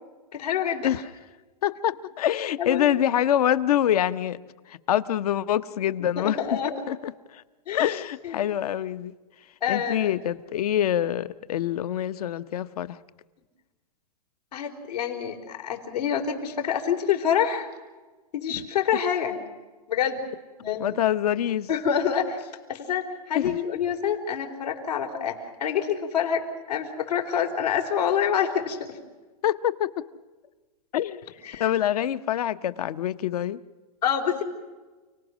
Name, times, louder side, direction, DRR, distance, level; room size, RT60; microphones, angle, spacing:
voice 1, 0.3-0.9 2.6-2.8 6.0-6.7 7.7-8.4 9.6-10.2 14.5-17.7 18.3-19.4 19.9-20.2 20.6-20.9 21.7-29.0 31.4-31.7 34.0-34.4, left 8 dB, 90° left, 2 dB, 4.2 m, -27 dB
voice 2, 1.6-4.4 4.7-6.4 6.9-7.4 7.7-9.1 9.7-13.0 20.8-21.7 23.3-23.6 29.4-29.9 30.9-31.2 31.6-33.6, left 11 dB, 70° left, 15 dB, 0.9 m, -25 dB
30.0 x 19.0 x 6.3 m, 1.3 s
hypercardioid pair, 150°, 20 cm